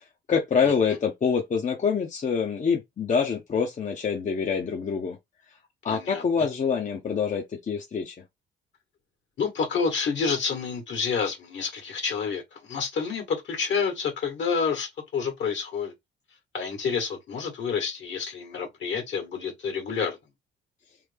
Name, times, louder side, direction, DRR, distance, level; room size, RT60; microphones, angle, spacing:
voice 1, 0.0-5.2 5.8-8.1, left 6 dB, 40° left, 0.8 m, -26 dB
voice 2, 5.9-6.5 9.4-15.9 16.5-20.2, left 5 dB, 65° left, 1.7 m, -29 dB
3.3 x 2.0 x 3.4 m
cardioid pair, 90°, 20 cm